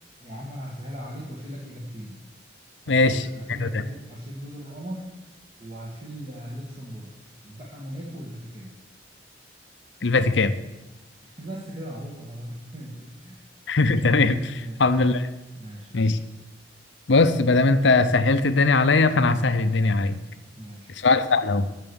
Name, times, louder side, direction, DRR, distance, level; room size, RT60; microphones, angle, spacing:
voice 1, 0.2-2.2 2.8-5.2 5.6-7.1 7.4-8.7 11.2-13.5 14.5-14.8 15.6-16.0 20.5-21.0, equal, 30° right, -4 dB, 1.7 m, -38 dB
voice 2, 2.9-3.8 10.0-10.5 13.7-15.3 15.9-16.2 17.1-20.2 21.0-21.7, left 3 dB, 70° left, 11 dB, 0.7 m, -20 dB
11.0 x 6.8 x 7.1 m, 1.0 s
head